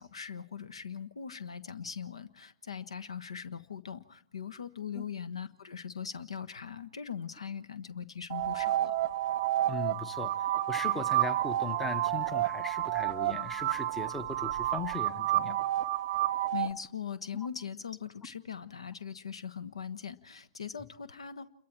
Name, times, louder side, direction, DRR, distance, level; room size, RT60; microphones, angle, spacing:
voice 1, 0.0-8.9 16.5-21.5, left 7 dB, 65° left, 17 dB, 1.3 m, -40 dB
sound 1, 8.3-16.7, right 14 dB, 40° right, 0.8 m, -30 dB
voice 2, 9.7-15.6, left 3 dB, 5° left, 16 dB, 1.0 m, -38 dB
29.0 x 22.5 x 4.5 m, 0.62 s
figure-of-eight pair, 120°, 3 cm